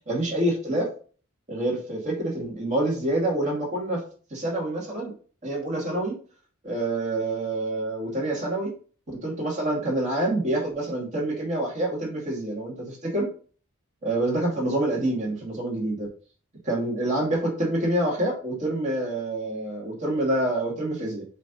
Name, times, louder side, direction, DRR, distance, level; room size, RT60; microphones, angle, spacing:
voice 1, 0.1-0.9 1.5-4.0 4.3-5.1 5.4-6.2 6.6-8.7 9.1-13.3 14.0-16.1 16.6-21.2, right 1 dB, 35° right, -3 dB, 2.3 m, -27 dB
7.9 x 3.0 x 4.0 m, 0.41 s
head